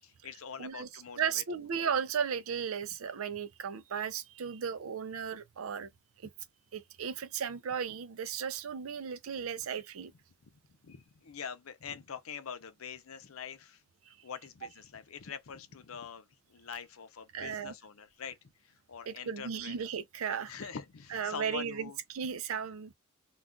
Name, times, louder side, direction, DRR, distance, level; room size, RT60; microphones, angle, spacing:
voice 1, 0.0-1.4 10.4-10.5 10.8-13.8 14.2-19.8 20.5-22.0, left 6 dB, 90° left, 0.6 m, -44 dB
voice 2, 0.6-0.9 1.2-5.9 6.7-10.1 17.3-17.7 19.1-20.5 21.1-22.9, right 7 dB, 80° right, 0.5 m, -35 dB
2.4 x 2.3 x 3.7 m
head